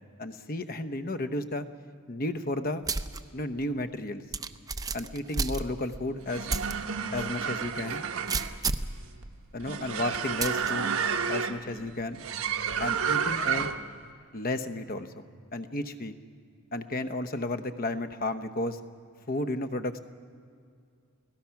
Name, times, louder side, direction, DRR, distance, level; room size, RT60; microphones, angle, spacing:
voice 1, 0.2-1.7 2.1-2.8 3.3-4.2 4.9-6.5 7.1-8.0 9.5-10.9 11.3-12.2 12.8-13.7 14.3-15.2 15.5-16.1 16.7-18.8 19.3-20.0, left 1 dB, 40° left, 10 dB, 0.9 m, -33 dB
sound 1, 2.9-3.2 3.6-3.7 4.3-6.0 6.5-6.7 7.2-7.3 8.3-9.0 10.4-10.7, right 4 dB, 15° right, 0.5 m, -31 dB
sound 2, 6.1-14.0, right 6 dB, 70° right, 1.0 m, -31 dB
30.0 x 18.5 x 5.9 m, 2.3 s
head